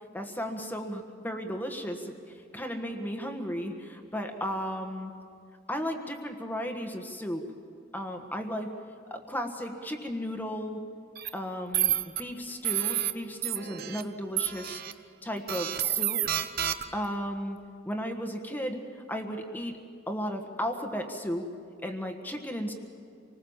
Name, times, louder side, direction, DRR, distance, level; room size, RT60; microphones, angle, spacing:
voice 1, 0.1-5.1 5.7-7.4 7.9-8.7 9.1-10.8 11.3-14.8 15.2-16.2 16.9-17.6 17.8-19.8 20.1-21.5 21.8-22.7, equal, 10° left, 4 dB, 1.4 m, -35 dB
sound 1, 11.2-11.3 11.7-12.2 12.6-13.1 13.4-14.0 14.4-14.9 15.5-17.1, right 12 dB, 50° right, 0.9 m, -29 dB
26.0 x 20.0 x 7.3 m, 2.3 s
head